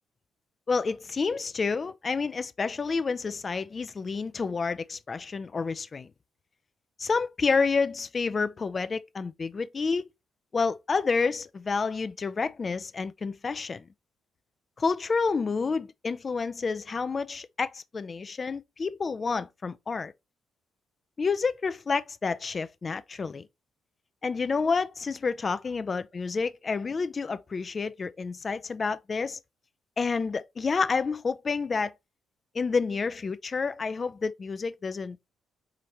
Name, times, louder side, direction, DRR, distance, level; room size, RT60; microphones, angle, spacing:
voice 1, 0.7-6.1 7.0-10.1 10.5-13.8 14.8-20.1 21.2-23.5 24.2-29.4 30.0-31.9 32.5-35.3, left 4 dB, 35° left, 0.4 m, -29 dB
4.9 x 2.8 x 3.0 m
cardioid pair, 90°, 0 cm